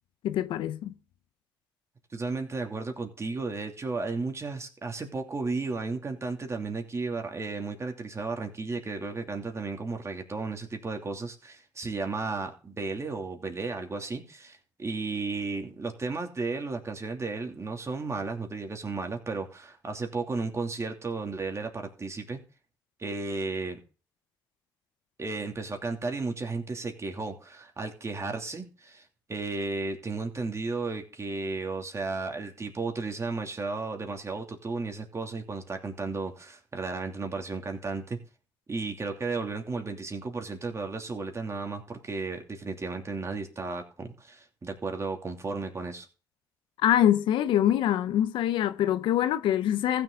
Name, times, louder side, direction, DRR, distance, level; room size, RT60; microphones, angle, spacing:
voice 1, 0.2-0.9 46.8-50.0, left 11 dB, 80° left, 0.7 m, -24 dB
voice 2, 2.1-22.4 23.0-23.8 25.2-38.2 38.7-46.1, right 3 dB, 35° right, 2.8 m, -34 dB
15.0 x 6.9 x 3.8 m
supercardioid pair, 70°, 8 cm